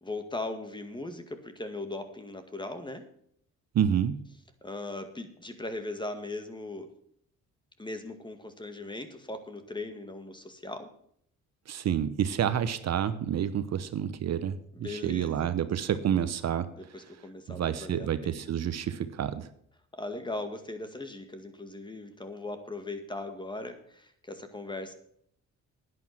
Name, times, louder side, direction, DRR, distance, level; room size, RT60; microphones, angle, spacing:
voice 1, 0.0-3.1 4.6-6.9 7.8-10.9 14.7-15.5 16.8-18.5 19.9-24.9, left 2 dB, 15° left, 8 dB, 2.0 m, -39 dB
voice 2, 3.7-4.3 11.7-16.7 17.5-19.5, right 9 dB, 60° right, 12 dB, 0.9 m, -29 dB
10.5 x 9.8 x 6.0 m, 0.67 s
cardioid pair, 90°, 30 cm